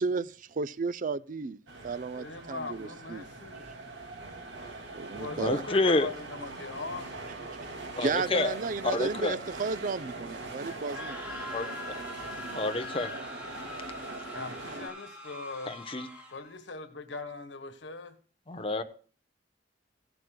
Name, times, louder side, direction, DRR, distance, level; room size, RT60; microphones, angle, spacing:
voice 1, 0.0-3.2 4.9-5.6 7.9-11.2, right 4 dB, 45° right, 0.5 m, -33 dB
sound 1, 1.7-14.9, right 2 dB, 75° right, 2.3 m, -42 dB
voice 2, 2.1-3.7 5.2-7.1 14.3-15.8 16.3-18.2, left 3 dB, 90° left, 1.4 m, -40 dB
voice 3, 5.3-6.1 8.0-8.5 8.8-9.4 11.5-11.7 12.5-13.1 15.7-16.1 18.5-18.8, left 2 dB, 30° left, 0.9 m, -28 dB
Wind instrument woodwind instrument, 10.7-13.3, left 5 dB, 55° left, 1.6 m, -44 dB
sound 2, 10.8-16.5, equal, 5° right, 4.1 m, -44 dB
16.0 x 11.0 x 2.2 m
head